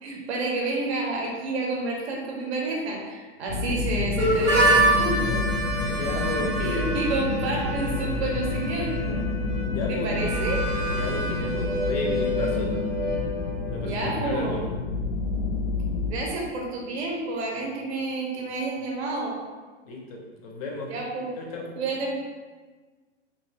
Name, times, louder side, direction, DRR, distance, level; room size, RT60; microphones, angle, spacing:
voice 1, 0.0-5.4 6.6-9.2 9.9-10.6 13.8-14.6 16.1-19.4 20.9-21.3 21.8-22.1, right 2 dB, 65° right, -1 dB, 0.7 m, -29 dB
voice 2, 3.4-3.7 5.8-7.0 9.6-10.2 10.9-12.7 13.7-14.6 19.9-20.9 21.4-21.8, left 2 dB, 30° left, 0 dB, 0.4 m, -34 dB
sound 1, 3.5-16.1, left 3 dB, 90° left, 0.7 m, -29 dB
Harmonica, 4.2-13.8, right 1 dB, 10° right, 0.8 m, -27 dB
2.8 x 2.4 x 3.2 m, 1.4 s
hypercardioid pair, 155°, 35 cm